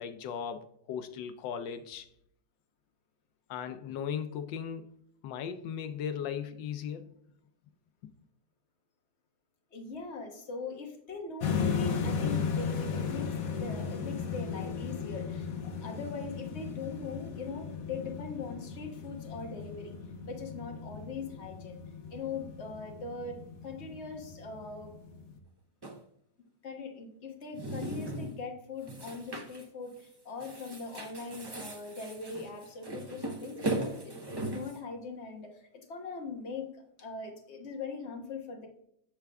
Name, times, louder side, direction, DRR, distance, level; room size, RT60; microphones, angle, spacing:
voice 1, 0.0-2.1 3.5-4.9 5.2-7.1, left 7 dB, 85° left, 1.4 m, -37 dB
voice 2, 9.7-21.8 22.1-24.9 26.6-35.6 35.9-38.7, left 4 dB, 40° left, 1.5 m, -41 dB
sound 1, 11.4-25.4, left 6 dB, 55° left, 1.2 m, -36 dB
sound 2, 25.8-26.0 27.4-28.4 28.8-29.6 30.0-30.1 30.4-34.8, right 1 dB, 25° right, 0.5 m, -38 dB
8.1 x 6.6 x 3.5 m
omnidirectional pair, 2.0 m